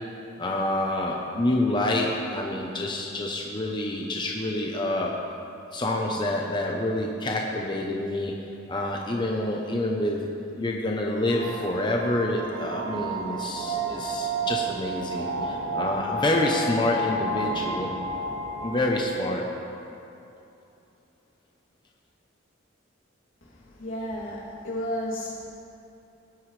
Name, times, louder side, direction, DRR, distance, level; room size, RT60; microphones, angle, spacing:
voice 1, 0.4-5.1 5.7-8.4 8.7-17.9 18.6-19.5, left 1 dB, 25° left, -1 dB, 0.7 m, -27 dB
sound 1, 11.3-19.0, right 2 dB, 70° right, 1.0 m, -31 dB
voice 2, 23.8-25.5, equal, 80° left, -7 dB, 2.8 m, -32 dB
17.0 x 9.3 x 3.3 m, 2.8 s
head